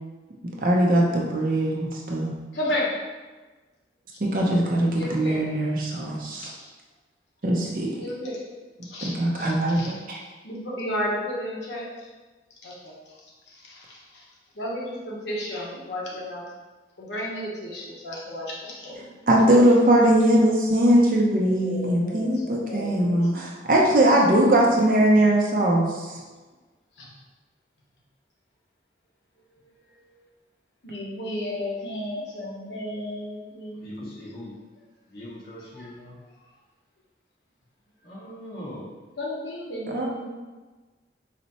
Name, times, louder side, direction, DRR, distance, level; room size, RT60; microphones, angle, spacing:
voice 1, 0.6-2.3 4.2-6.5 7.4-7.9 9.2-10.2 19.3-26.1 39.9-40.1, right 1 dB, 50° right, -2 dB, 0.6 m, -20 dB
voice 2, 2.5-2.9 4.9-5.4 6.4-6.7 8.0-8.4 8.8-10.0 10.4-12.1 12.6-12.9 13.5-14.3 14.5-16.5 17.0-19.1 21.4-23.3 27.0-27.1 29.8-30.2 30.8-34.2 35.7-35.9 39.2-40.3, left 1 dB, 85° left, -4 dB, 0.9 m, -33 dB
voice 3, 33.8-34.5 35.1-36.2 38.0-39.0, left 1 dB, 60° left, -8 dB, 1.5 m, -41 dB
4.1 x 2.2 x 4.1 m, 1.3 s
head